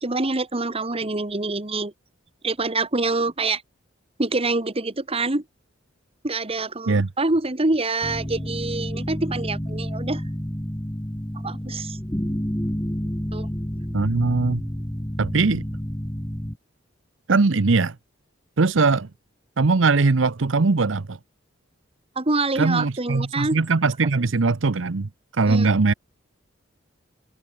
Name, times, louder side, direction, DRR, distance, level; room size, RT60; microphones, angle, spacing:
voice 1, 0.0-1.9 2.4-3.6 4.2-5.4 6.2-10.2 11.4-12.0 13.3-13.5 22.1-23.6 25.5-25.7, right 2 dB, 30° right, 1.5 m, -25 dB
sound 1, 8.0-16.6, equal, 15° left, 1.8 m, -30 dB
voice 2, 13.9-14.6 15.2-15.6 17.3-17.9 18.6-19.1 19.6-21.2 22.6-25.9, right 3 dB, 70° right, 0.8 m, -20 dB
head